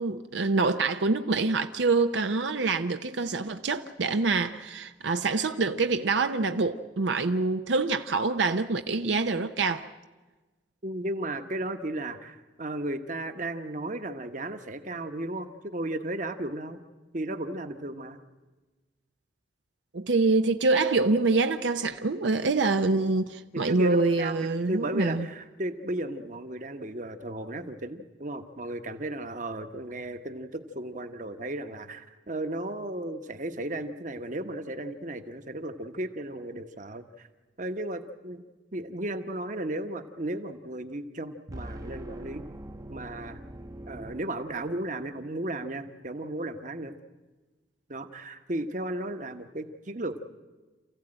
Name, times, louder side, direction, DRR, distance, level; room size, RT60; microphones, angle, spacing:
voice 1, 0.0-9.9 19.9-25.3, right 3 dB, 80° right, 0.7 m, -25 dB
voice 2, 10.8-16.8 17.1-18.2 23.5-37.3 37.6-38.4 38.7-42.5 42.9-43.4 43.9-46.9 47.9-50.2, right 1 dB, 45° right, 1.1 m, -35 dB
sound 1, 41.5-44.9, right 1 dB, 20° right, 0.7 m, -42 dB
28.0 x 15.0 x 8.9 m
head